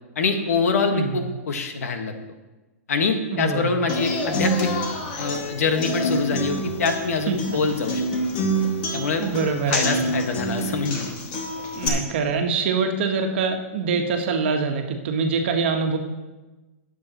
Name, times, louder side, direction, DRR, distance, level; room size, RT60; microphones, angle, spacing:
voice 1, 0.1-2.2 2.9-4.7 5.2-8.1 8.9-9.2 9.7-11.1, left 4 dB, 75° left, 5 dB, 1.7 m, -24 dB
voice 2, 0.9-1.2 3.3-3.7 7.3-7.6 9.2-10.0 11.7-16.0, right 5 dB, 45° right, 4 dB, 1.4 m, -24 dB
Human voice / Acoustic guitar, 3.9-11.9, equal, 35° left, 2.0 m, -27 dB
20.0 x 7.8 x 3.1 m, 1.1 s
hypercardioid pair, 170°, 8 cm